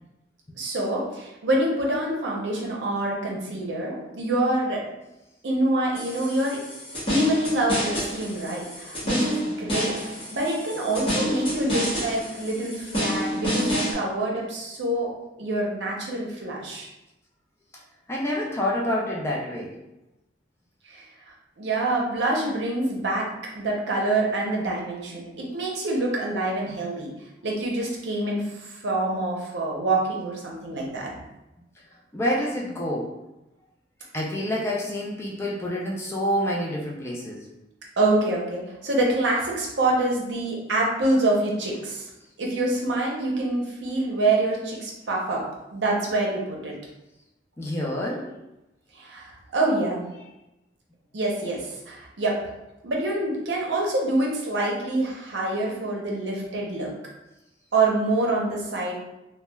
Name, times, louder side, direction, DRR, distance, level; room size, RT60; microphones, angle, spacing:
voice 1, 0.6-4.8 5.4-6.6 7.1-9.9 10.3-15.1 15.4-16.9 20.9-21.0 21.6-27.1 27.4-31.1 38.0-42.1 42.4-45.4 45.7-46.7 48.9-50.1 51.1-52.4 52.8-56.9 57.7-58.9, right 2 dB, 75° right, -2 dB, 0.6 m, -26 dB
sound 1, 5.9-13.9, equal, 30° left, 0.9 m, -29 dB
voice 2, 18.1-19.7 32.1-33.2 34.1-37.4 47.6-48.4, left 1 dB, 15° left, -3 dB, 0.3 m, -27 dB
3.0 x 2.2 x 2.2 m, 0.94 s
head